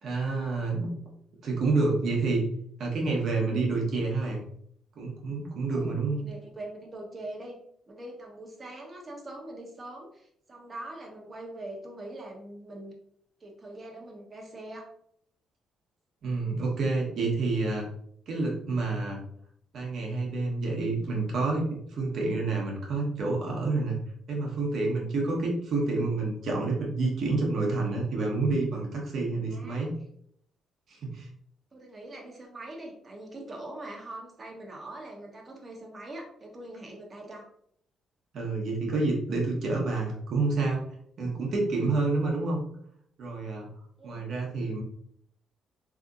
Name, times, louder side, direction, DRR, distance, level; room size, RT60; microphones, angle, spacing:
voice 1, 0.0-0.9 1.4-2.5 2.8-4.4 5.0-6.2 16.2-17.9 18.3-19.2 19.7-24.0 24.3-29.9 30.9-31.3 38.3-40.8 41.2-42.6 43.2-43.7 44.0-44.8, right 3 dB, 65° right, -2 dB, 1.2 m, -28 dB
voice 2, 5.7-7.6 7.9-12.9 13.4-14.9 29.5-29.9 31.7-37.4 42.2-42.4 44.0-44.2, right 1 dB, 35° right, 0 dB, 1.1 m, -43 dB
3.4 x 2.9 x 2.5 m, 0.67 s
cardioid pair, 80°, 0 cm